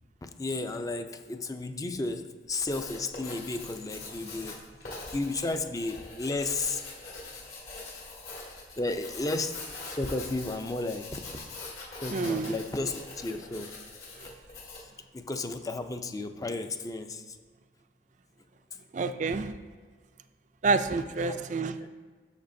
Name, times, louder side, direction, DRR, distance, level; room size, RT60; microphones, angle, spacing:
voice 1, 0.2-4.6 5.1-6.8 8.8-9.5 9.9-11.2 12.0-13.7 14.7-17.4 21.3-21.4 21.8-21.9, left 2 dB, 20° left, 7 dB, 0.5 m, -33 dB
Writing, 2.5-14.9, left 3 dB, 60° left, 2.4 m, -43 dB
voice 2, 12.1-12.5 18.9-19.5 20.6-21.8, right 4 dB, 45° right, 10 dB, 0.4 m, -28 dB
10.5 x 7.1 x 2.6 m, 1.5 s
head